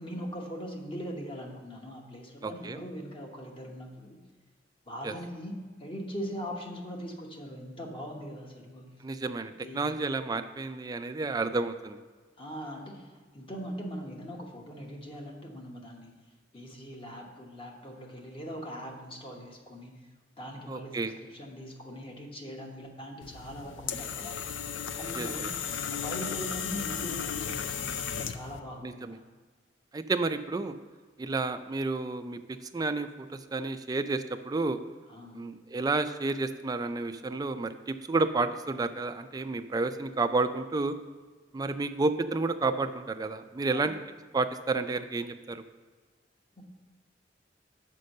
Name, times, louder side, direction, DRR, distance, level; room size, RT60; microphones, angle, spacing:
voice 1, 0.0-4.2 4.9-9.0 9.6-10.0 12.4-16.1 16.5-24.4 24.9-25.5 25.9-29.2 35.1-35.4 43.7-44.0 46.6-46.7, equal, 30° left, 1 dB, 1.1 m, -41 dB
voice 2, 2.4-2.8 5.0-5.1 9.0-12.0 20.7-21.1 25.1-25.3 28.8-29.2 29.9-30.7 31.2-32.4 32.7-34.8 35.3-40.9 41.5-43.9 44.3-45.6, right 3 dB, 20° right, 9 dB, 0.3 m, -30 dB
sound 1, 23.2-28.6, left 7 dB, 80° left, 0.5 m, -35 dB
6.6 x 5.2 x 6.4 m, 1.4 s
head